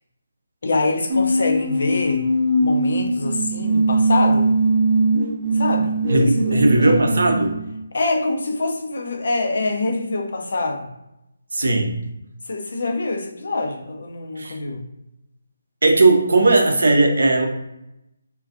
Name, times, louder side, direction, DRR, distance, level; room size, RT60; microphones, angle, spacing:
voice 1, 0.6-2.3 2.6-4.5 5.5-7.3 7.9-10.9 12.5-14.8, left 2 dB, 55° left, 2 dB, 0.5 m, -25 dB
sound 1, 1.1-7.8, right 2 dB, 20° right, 0.7 m, -20 dB
voice 2, 6.1-7.6 11.5-11.9 14.4-14.6 15.8-17.5, right 2 dB, 65° right, 3 dB, 0.5 m, -17 dB
2.4 x 2.2 x 2.4 m, 0.87 s
figure-of-eight pair, 150°, 0 cm